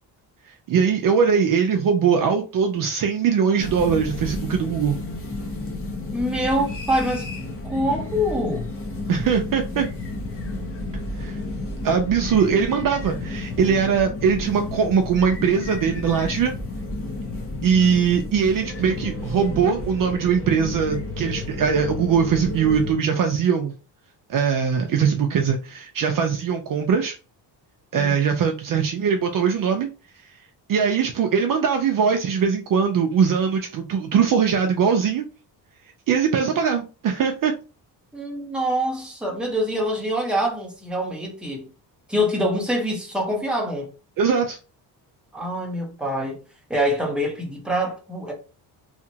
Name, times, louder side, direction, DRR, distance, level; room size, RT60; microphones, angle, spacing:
voice 1, 0.7-5.0 9.1-9.9 11.2-11.4 11.8-16.5 17.6-23.7 24.3-27.1 27.9-29.9 30.7-35.2 36.1-37.5 44.2-44.6, right 6 dB, 50° right, 0.5 m, -21 dB
sound 1, 3.6-22.9, left 2 dB, 30° left, 0.8 m, -32 dB
voice 2, 6.1-7.3 7.6-8.7 27.9-28.1 38.1-41.7 42.1-43.9 45.3-46.4 46.7-48.3, equal, ahead, 1.1 m, -25 dB
2.8 x 2.4 x 2.7 m
cardioid pair, 110°, 44 cm